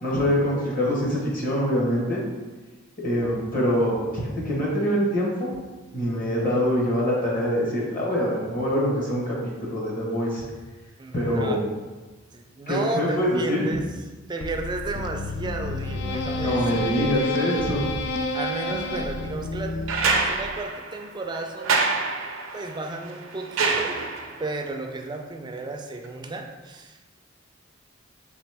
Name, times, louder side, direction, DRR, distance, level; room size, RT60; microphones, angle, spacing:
voice 1, 0.0-2.2 3.0-5.5 5.9-9.3 9.7-10.4 11.1-11.6 12.7-13.7 16.4-17.8, equal, 45° left, -4 dB, 1.1 m, -24 dB
voice 2, 11.0-11.6 12.3-13.8 14.3-17.4 18.3-19.7 20.0-22.2 22.5-24.1 24.4-27.2, right 2 dB, 20° right, 4 dB, 0.4 m, -33 dB
sound 1, 14.4-20.6, left 1 dB, 60° left, 0.3 m, -30 dB
sound 2, 19.9-24.5 26.0-26.1, right 4 dB, 85° right, 0.6 m, -26 dB
4.0 x 3.1 x 3.4 m, 1.2 s
head